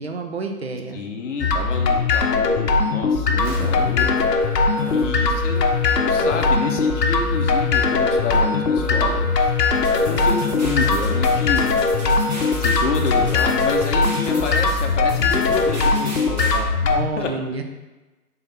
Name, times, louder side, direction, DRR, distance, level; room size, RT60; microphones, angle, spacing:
voice 1, 0.0-1.0 6.2-6.4 16.8-17.6, right 4 dB, 45° right, 4 dB, 0.5 m, -29 dB
voice 2, 0.9-4.1 4.9-9.6 9.9-11.7 12.5-17.3, left 4 dB, 50° left, 2 dB, 0.7 m, -29 dB
sound 1, 1.4-17.1, left 4 dB, 85° left, 0.7 m, -20 dB
sound 2, 3.3-14.7, right 1 dB, 10° left, 0.6 m, -32 dB
sound 3, 9.7-16.6, right 1 dB, 25° right, 1.1 m, -35 dB
3.9 x 3.3 x 4.1 m, 1.1 s
figure-of-eight pair, 145°, 47 cm